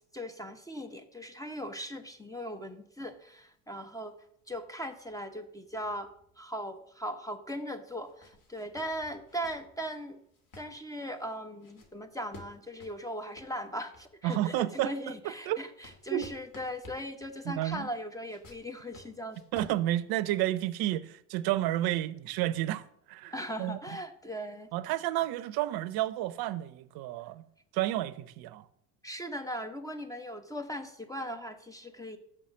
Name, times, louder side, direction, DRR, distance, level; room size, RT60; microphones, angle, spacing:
voice 1, 0.0-4.1 4.5-6.1 6.4-10.2 10.6-19.4 23.3-24.7 29.0-32.2, equal, 10° left, 0.8 m, -39 dB
sound 1, 1.5-6.8 7.2-7.3 7.9-14.3 14.8-20.6, left 2 dB, 45° left, 2.3 m, -56 dB
voice 2, 14.2-14.9 15.2-15.6 16.1-16.3 17.4-17.9 19.5-23.8 24.7-27.4 27.7-28.6, right 14 dB, 55° right, 0.7 m, -31 dB
6.5 x 5.6 x 6.3 m
hypercardioid pair, 70°, 45 cm